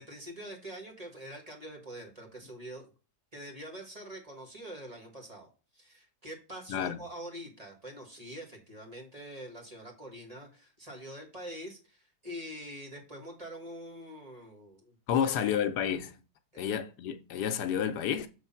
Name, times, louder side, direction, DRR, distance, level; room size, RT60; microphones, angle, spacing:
voice 1, 0.0-2.9 3.3-5.5 5.7-15.6 16.5-16.6, equal, 25° right, 1.8 m, -45 dB
voice 2, 6.7-7.0 15.1-16.2 16.6-18.3, left 9 dB, 80° left, 1.3 m, -30 dB
7.2 x 3.2 x 5.6 m
omnidirectional pair, 1.7 m